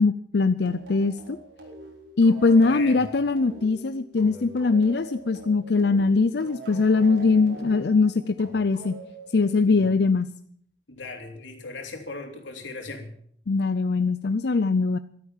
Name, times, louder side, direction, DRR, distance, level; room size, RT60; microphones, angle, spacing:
voice 1, 0.0-1.4 2.2-9.0 9.3-10.3 13.5-15.0, left 4 dB, 60° left, 12 dB, 0.5 m, -21 dB
sound 1, 0.6-9.9, right 2 dB, 75° right, 4.6 m, -44 dB
voice 2, 2.6-3.0 9.7-9.9 10.9-13.1, left 3 dB, 90° left, 3 dB, 3.4 m, -38 dB
13.5 x 12.5 x 7.4 m, 0.63 s
head